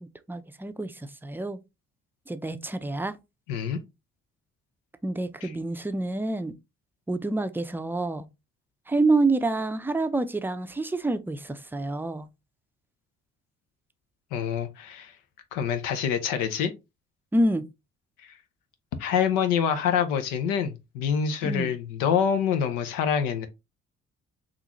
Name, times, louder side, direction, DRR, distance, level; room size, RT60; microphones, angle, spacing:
voice 1, 0.0-1.6 2.3-3.2 5.0-6.5 7.1-8.3 8.9-12.3 17.3-17.6 21.4-21.7, right 2 dB, 5° right, 0.4 m, -27 dB
voice 2, 3.5-3.8 5.4-5.5 14.3-15.1 15.5-16.7 18.2-18.3 19.0-23.5, left 7 dB, 85° left, 0.6 m, -26 dB
3.8 x 2.5 x 2.9 m
supercardioid pair, 60°, 31 cm